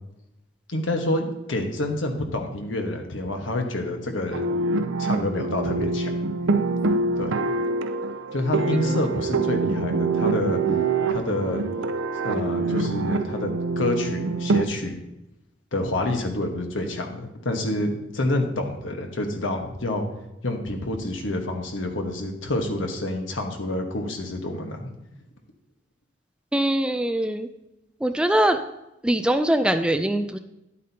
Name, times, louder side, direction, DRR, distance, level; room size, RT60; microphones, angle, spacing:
voice 1, 0.7-4.5 5.0-6.1 7.2-7.3 8.3-10.6 11.1-11.6 12.2-15.0 15.7-20.1 20.4-24.9, left 1 dB, 85° left, 4 dB, 1.3 m, -28 dB
sound 1, 4.3-14.6, right 3 dB, 85° right, 0.6 m, -25 dB
voice 2, 26.5-27.5 28.0-28.6 29.0-30.4, right 1 dB, 5° right, 8 dB, 0.3 m, -22 dB
11.0 x 8.4 x 2.8 m, 0.92 s
head